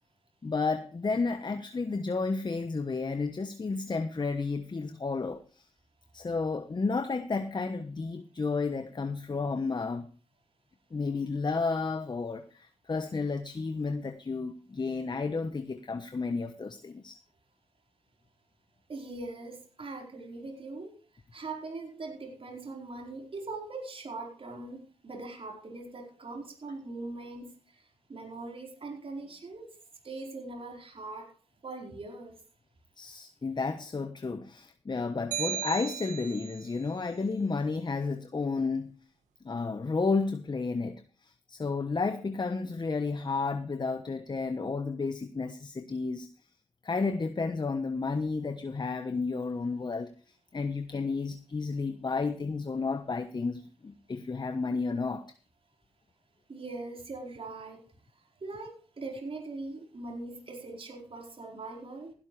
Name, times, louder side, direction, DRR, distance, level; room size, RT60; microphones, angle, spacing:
voice 1, 0.4-5.4 6.1-10.1 10.9-17.2 33.0-38.9 39.4-46.3 46.8-50.1 50.5-55.2, left 4 dB, 35° left, 1.1 m, -32 dB
voice 2, 18.9-21.0 21.3-27.5 28.1-29.7 30.0-31.3 31.6-32.3 56.5-57.8 58.4-62.1, right 3 dB, 50° right, 4.7 m, -41 dB
sound 1, 35.3-36.7, right 10 dB, 90° right, 1.6 m, -35 dB
15.5 x 11.5 x 3.3 m
supercardioid pair, 45°, 12 cm